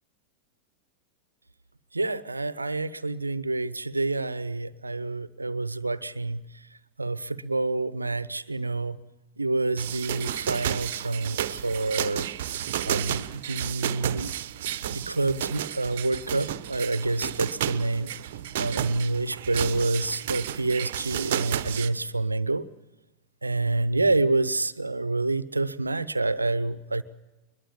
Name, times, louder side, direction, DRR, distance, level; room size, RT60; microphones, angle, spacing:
voice 1, 1.9-6.4 7.0-9.0 9.4-12.3 12.9-14.3 14.9-18.1 18.6-22.7 23.4-27.0, right 2 dB, 80° right, 18 dB, 0.8 m, -28 dB
sound 1, 9.8-21.9, right 11 dB, 55° right, 1.0 m, -32 dB
22.0 x 21.5 x 7.2 m, 1.1 s
figure-of-eight pair, 90°, 0 cm